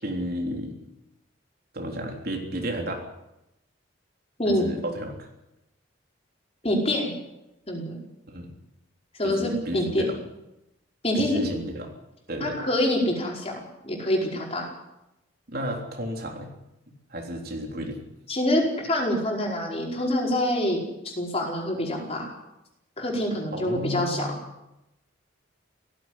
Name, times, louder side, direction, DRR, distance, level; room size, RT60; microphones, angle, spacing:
voice 1, 0.0-0.8 1.7-3.1 4.5-5.3 8.3-8.5 9.2-10.2 11.1-11.9 12.3-12.6 15.5-16.5 16.9-18.0 23.5-24.4, equal, 50° right, 1 dB, 3.5 m, -32 dB
voice 2, 6.6-7.1 7.7-7.9 9.2-10.1 11.0-11.4 12.4-14.7 18.3-22.3 23.0-24.3, left 1 dB, 30° left, -1 dB, 5.0 m, -26 dB
17.5 x 15.5 x 10.0 m, 0.91 s
head